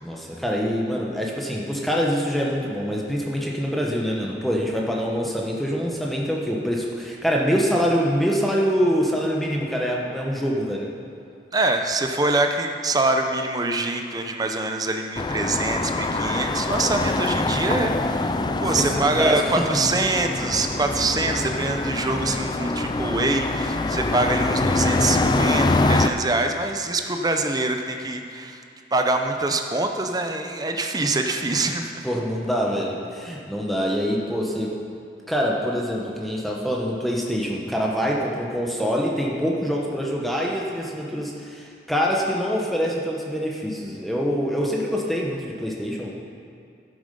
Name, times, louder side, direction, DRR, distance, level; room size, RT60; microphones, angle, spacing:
voice 1, 0.0-10.9 18.6-19.7 32.0-34.7 35.3-46.1, equal, ahead, -3 dB, 1.0 m, -25 dB
voice 2, 11.5-18.2 18.6-28.6 28.9-32.0, right 2 dB, 20° right, 5 dB, 0.7 m, -24 dB
sound 1, 15.2-26.1, left 2 dB, 25° left, 0.4 m, -24 dB
11.5 x 8.6 x 5.4 m, 2.4 s
head